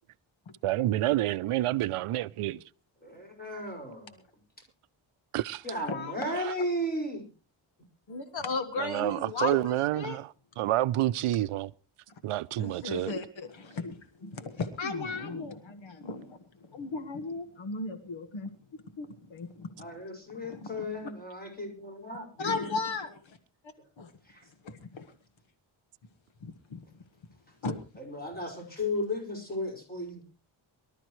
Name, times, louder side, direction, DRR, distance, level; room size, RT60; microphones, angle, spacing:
voice 1, 0.6-2.6 5.3-5.6 8.8-10.3 10.6-11.7 12.2-13.1, right 15 dB, 90° right, 0.6 m, -28 dB
voice 2, 3.0-4.2 5.6-7.3 14.2-14.5 19.8-22.7 24.2-24.4 28.0-30.2, left 1 dB, 20° left, 5.5 m, -35 dB
voice 3, 5.7-6.3 8.1-10.2 12.6-16.4 16.7-18.5 19.0-19.7 20.5-20.6 22.4-23.4 24.0-24.1 24.6-25.0 26.4-26.8 27.6-27.8, left 4 dB, 65° left, 1.6 m, -35 dB
23.5 x 12.5 x 3.2 m
wide cardioid pair, 130°, 50 cm